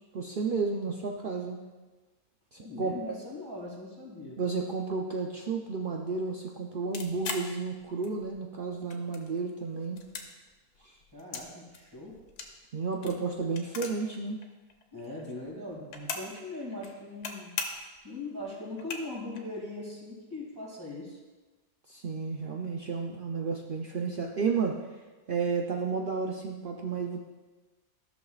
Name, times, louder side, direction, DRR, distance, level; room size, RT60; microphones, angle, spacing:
voice 1, 0.1-1.6 2.5-3.1 4.4-10.0 10.8-11.0 12.7-14.4 21.9-24.8 25.3-27.2, right 4 dB, 85° right, 0 dB, 0.4 m, -32 dB
voice 2, 2.6-4.4 11.1-12.2 14.9-17.6 18.0-21.2, left 2 dB, 15° right, -4 dB, 2.2 m, -40 dB
sound 1, 6.9-8.4 8.7-9.5 9.8-11.5 11.7-14.2 14.4-14.5 14.7-16.4 16.7-17.3 17.6-18.0 18.4-18.5 18.7-19.4, left 5 dB, 85° left, 1.4 m, -39 dB
13.5 x 6.3 x 2.4 m, 1.2 s
omnidirectional pair, 1.7 m